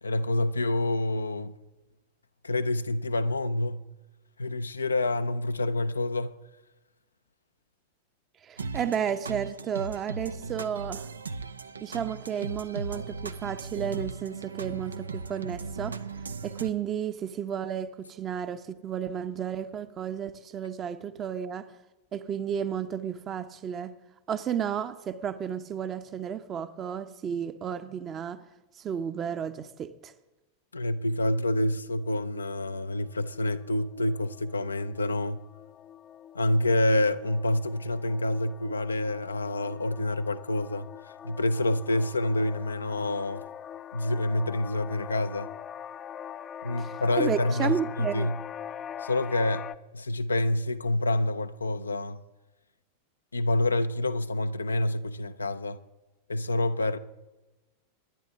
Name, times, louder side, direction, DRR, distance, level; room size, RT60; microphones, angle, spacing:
voice 1, 0.0-1.5 2.4-3.8 4.4-6.3 30.7-35.4 36.3-40.9 41.2-43.4 43.9-45.5 46.6-48.4 49.0-52.2 53.3-55.8 56.3-57.0, left 1 dB, 75° left, 0.5 m, -27 dB
voice 2, 8.4-11.1 11.8-16.0 16.4-21.7 22.1-23.9 24.3-28.4 28.8-30.1 46.8-48.3, right 8 dB, 30° right, 0.8 m, -32 dB
sound 1, 8.6-16.7, right 4 dB, 75° right, 0.6 m, -37 dB
sound 2, 32.0-49.8, left 9 dB, 25° left, 0.5 m, -43 dB
23.5 x 10.5 x 3.6 m
figure-of-eight pair, 90°, 0 cm